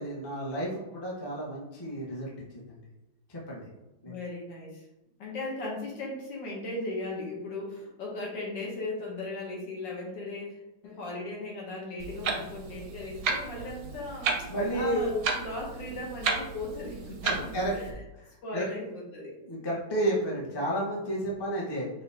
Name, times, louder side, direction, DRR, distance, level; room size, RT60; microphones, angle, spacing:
voice 1, 0.0-2.8 3.3-3.7 4.0-4.1 14.4-15.1 17.2-17.8 18.5-18.7 19.4-21.9, right 1 dB, 20° left, -4 dB, 0.7 m, -32 dB
voice 2, 4.1-4.9 5.2-14.3 14.7-17.9 18.4-19.3, left 2 dB, 65° left, -2 dB, 1.7 m, -37 dB
Clock, 12.0-17.9, right 5 dB, 65° right, 0.9 m, -34 dB
5.3 x 2.7 x 3.4 m, 0.99 s
omnidirectional pair, 2.2 m